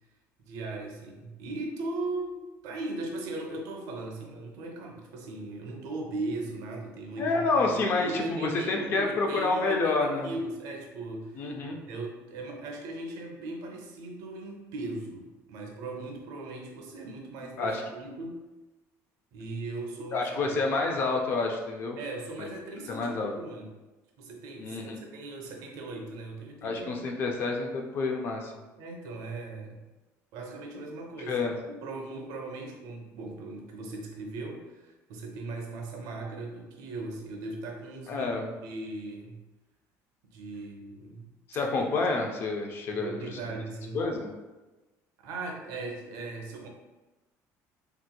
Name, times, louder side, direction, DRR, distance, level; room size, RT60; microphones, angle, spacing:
voice 1, 0.4-11.6 11.9-18.4 19.3-20.6 22.0-23.7 24.2-27.0 28.8-29.8 30.3-39.4 40.3-41.3 42.9-44.0 45.2-46.7, right 2 dB, 65° right, 1 dB, 0.6 m, -38 dB
voice 2, 7.2-10.3 11.4-11.8 17.6-17.8 20.1-22.0 22.9-23.3 24.6-25.0 26.6-28.5 31.3-31.5 38.1-38.5 41.5-43.4 43.9-44.3, left 3 dB, 35° left, 2 dB, 0.3 m, -28 dB
3.4 x 2.9 x 2.2 m, 1.1 s
cardioid pair, 180°, 6 cm